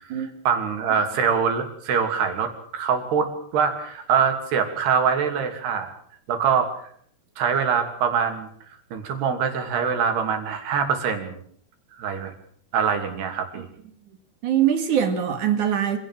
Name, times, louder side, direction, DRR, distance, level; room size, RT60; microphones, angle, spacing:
voice 1, 0.5-5.9 6.3-6.7 7.4-8.5 8.9-11.4 12.0-12.3 12.7-13.7, right 6 dB, 75° right, 6 dB, 4.9 m, -24 dB
voice 2, 14.4-16.0, right 9 dB, 55° right, 7 dB, 3.4 m, -22 dB
26.0 x 17.0 x 7.6 m, 0.62 s
omnidirectional pair, 4.7 m